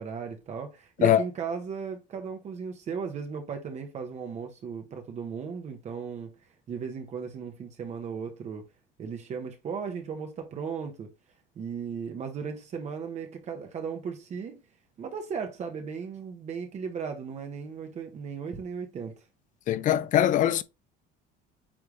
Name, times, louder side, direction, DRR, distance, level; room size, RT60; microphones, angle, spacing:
voice 1, 0.0-6.3 6.7-8.6 9.0-11.1 11.6-14.6 15.0-19.2, right 6 dB, 35° right, 1.1 m, -36 dB
voice 2, 19.7-20.6, left 11 dB, 40° left, 0.5 m, -22 dB
8.7 x 3.4 x 3.2 m
cardioid pair, 150°, 20 cm